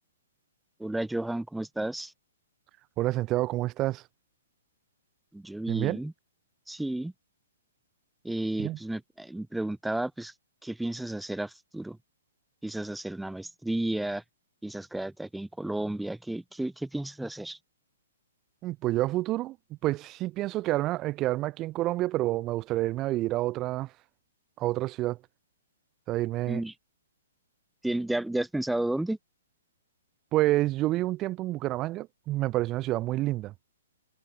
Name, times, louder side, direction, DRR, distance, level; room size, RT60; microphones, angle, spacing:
voice 1, 0.8-2.1 5.3-6.1 6.7-7.1 8.2-10.3 10.6-12.0 12.6-14.2 14.6-17.6 26.5-26.7 27.8-29.2, right 1 dB, 5° right, 3.3 m, -32 dB
voice 2, 3.0-4.0 5.7-6.0 8.6-8.8 18.6-19.6 19.8-23.9 24.6-25.2 26.1-26.6 30.3-33.5, right 16 dB, 25° right, 2.3 m, -28 dB
figure-of-eight pair, 120°, 0 cm